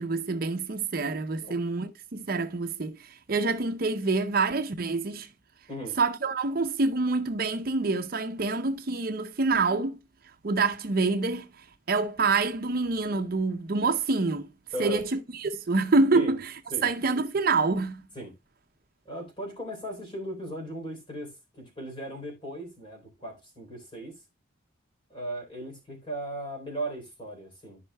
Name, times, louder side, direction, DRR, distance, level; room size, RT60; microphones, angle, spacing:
voice 1, 0.0-5.3 6.0-10.0 10.4-14.5 14.8-16.5 16.8-18.0, right 3 dB, 45° right, 0.6 m, -27 dB
voice 2, 14.7-15.0 16.1-16.4 16.7-16.9 18.2-18.3 19.1-24.2 25.1-27.8, right 1 dB, 25° left, 3.6 m, -37 dB
14.0 x 5.5 x 2.2 m
head